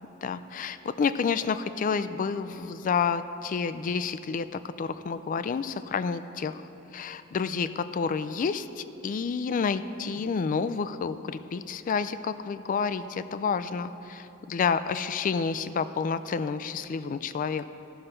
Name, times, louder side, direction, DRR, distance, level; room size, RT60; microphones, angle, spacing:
voice 1, 0.2-6.6 6.9-17.7, left 5 dB, 40° left, 12 dB, 0.3 m, -29 dB
14.5 x 6.5 x 4.4 m, 3.0 s
head